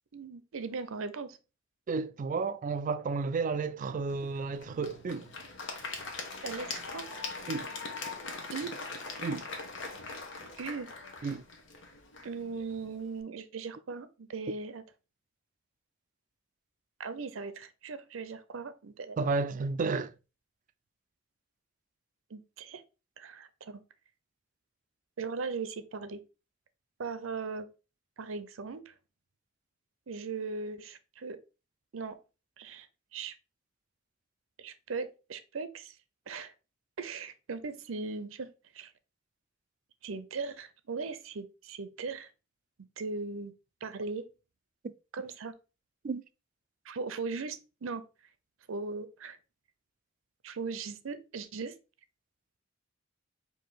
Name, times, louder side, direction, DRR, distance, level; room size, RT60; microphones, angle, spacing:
voice 1, 0.1-1.4 6.4-7.1 8.5-8.7 10.6-10.9 12.2-14.8 17.0-19.2 22.3-22.8 23.2-23.8 25.2-26.2 27.0-27.7 28.2-28.9 30.1-31.4 31.9-32.2 32.6-32.9 33.1-33.3 34.6-36.0 36.3-36.5 37.0-38.5 38.7-38.9 40.0-42.3 43.0-43.5 43.8-44.2 45.1-45.5 46.8-48.0 48.7-49.4 50.4-51.7, right 4 dB, 90° right, 0.6 m, -38 dB
voice 2, 1.9-5.3 7.5-7.7 9.2-9.4 11.2-11.4 19.2-20.1 44.8-44.9 46.0-46.2, right 4 dB, 40° right, 0.3 m, -32 dB
Applause / Crowd, 4.1-13.2, left 3 dB, 65° left, 1.0 m, -42 dB
4.7 x 2.7 x 4.0 m
head